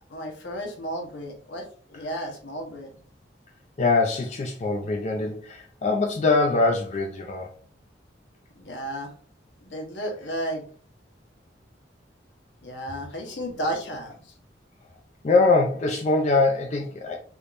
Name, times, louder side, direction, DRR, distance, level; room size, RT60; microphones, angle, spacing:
voice 1, 0.1-1.6 1.9-2.9 8.6-9.1 9.6-10.6 12.6-14.2, equal, 80° left, 0 dB, 1.0 m, -33 dB
voice 2, 3.8-7.5 15.2-17.2, left 3 dB, 35° left, 1 dB, 0.4 m, -23 dB
3.5 x 2.9 x 2.5 m, 0.43 s
head